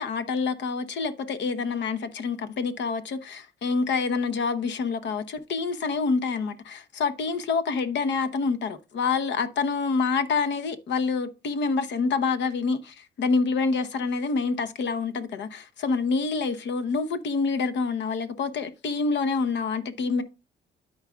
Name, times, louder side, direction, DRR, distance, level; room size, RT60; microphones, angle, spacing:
voice 1, 0.0-20.2, left 4 dB, 65° left, 0.9 m, -27 dB
12.5 x 4.8 x 2.3 m
cardioid pair, 90°, 20 cm